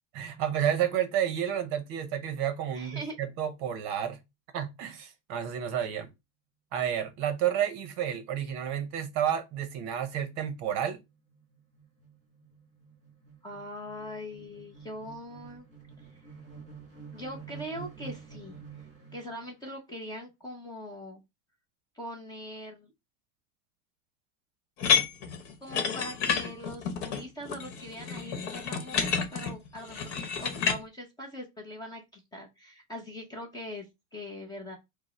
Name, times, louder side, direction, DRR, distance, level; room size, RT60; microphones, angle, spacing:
voice 1, 0.1-4.2 4.5-6.1 6.7-11.0, right 9 dB, 40° right, 0.8 m, -30 dB
voice 2, 2.7-3.1 13.4-15.6 17.1-18.6 19.1-21.2 21.9-22.9 25.6-34.8, equal, 10° left, 0.7 m, -41 dB
sound 1, 10.2-19.5, right 5 dB, 15° right, 1.8 m, -49 dB
sound 2, 24.8-30.8, left 6 dB, 55° left, 1.1 m, -30 dB
5.1 x 2.1 x 4.3 m
supercardioid pair, 165°, 40 cm